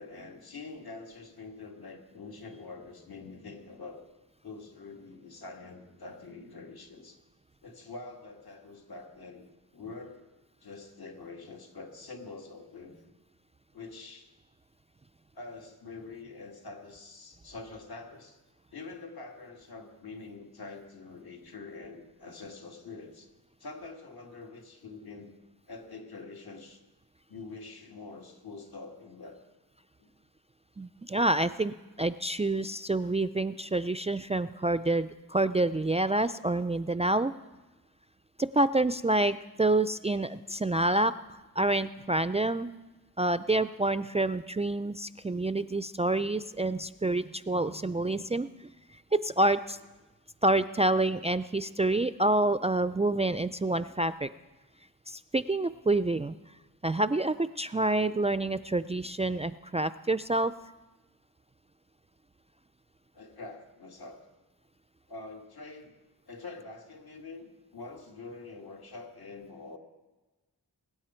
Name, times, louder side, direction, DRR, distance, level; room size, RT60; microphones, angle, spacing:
voice 1, 0.0-4.1 4.4-7.2 7.6-9.5 9.7-10.3 10.6-13.1 13.7-14.3 15.3-18.4 18.7-23.3 23.6-25.3 25.7-26.8 27.3-29.4 30.0-30.1 60.5-60.6 63.1-64.2 65.1-65.9 66.3-69.8, left 3 dB, 75° left, 2 dB, 2.2 m, -45 dB
voice 2, 30.8-37.3 38.4-41.1 41.6-42.7 43.2-48.5 49.1-49.8 50.4-54.3 55.1-56.4 56.8-60.5, right 2 dB, 20° right, 13 dB, 0.3 m, -27 dB
21.5 x 9.3 x 4.4 m, 1.1 s
wide cardioid pair, 70°, 38 cm